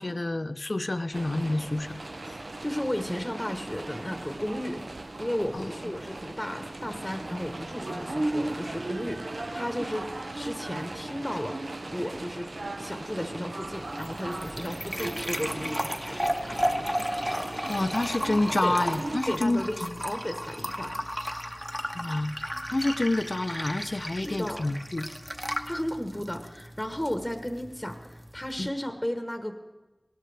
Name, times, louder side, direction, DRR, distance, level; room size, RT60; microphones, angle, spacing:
voice 1, 0.0-2.0 5.5-5.7 17.7-20.0 21.9-22.3 22.7-25.1 28.6-28.7, left 2 dB, 60° left, 11 dB, 0.6 m, -28 dB
sound 1, 1.1-19.2, right 2 dB, 80° right, 0.6 m, -37 dB
voice 2, 2.6-4.9 5.2-10.1 10.3-12.5 12.8-16.6 18.6-18.8 19.3-21.0 24.2-24.7 25.5-29.5, equal, 15° left, 6 dB, 1.1 m, -34 dB
sound 2, 13.7-28.7, equal, ahead, 0.9 m, -34 dB
18.0 x 12.5 x 3.4 m, 1.1 s
wide cardioid pair, 40°, 0 cm